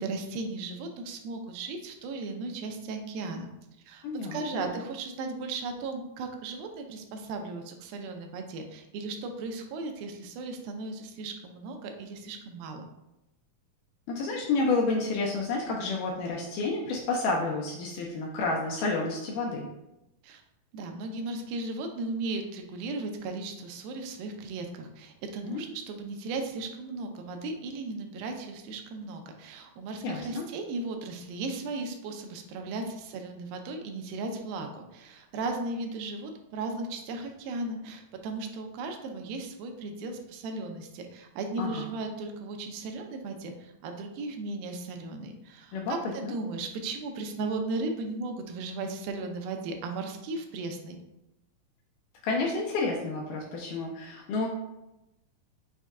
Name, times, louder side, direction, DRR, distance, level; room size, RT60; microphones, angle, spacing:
voice 1, 0.0-3.5 3.9-4.1 4.3-12.9 20.2-20.4 20.7-51.0, right 3 dB, 85° right, 4 dB, 2.4 m, -36 dB
voice 2, 4.0-4.7 14.1-19.7 25.4-25.6 30.0-30.5 41.6-41.8 45.7-45.9 46.2-46.3 52.2-54.5, left 3 dB, 80° left, -1 dB, 1.9 m, -30 dB
6.1 x 2.2 x 3.5 m, 0.91 s
omnidirectional pair, 4.2 m